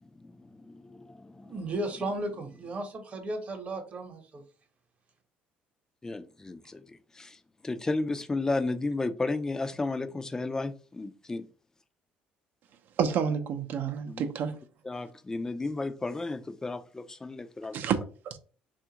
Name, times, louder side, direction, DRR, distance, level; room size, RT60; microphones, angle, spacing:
voice 1, 0.0-1.5 6.0-11.4 14.1-14.3 14.8-17.8, left 3 dB, 15° left, 0.4 m, -33 dB
voice 2, 1.4-4.4, right 2 dB, 40° right, 0.9 m, -35 dB
voice 3, 13.0-14.6 17.7-18.4, right 7 dB, 65° right, 0.6 m, -29 dB
3.4 x 2.4 x 2.8 m
cardioid pair, 95°, 3 cm